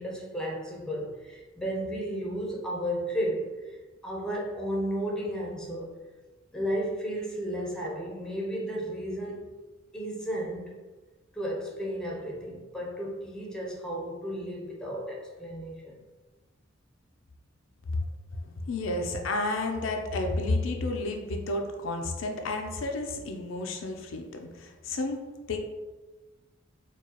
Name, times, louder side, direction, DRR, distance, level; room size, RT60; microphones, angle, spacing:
voice 1, 0.0-6.0 6.5-9.5 9.9-10.8 11.3-16.0, equal, 5° left, -2 dB, 0.6 m, -33 dB
voice 2, 18.4-25.6, left 2 dB, 70° left, 4 dB, 0.4 m, -31 dB
4.5 x 2.3 x 2.9 m, 1.2 s
head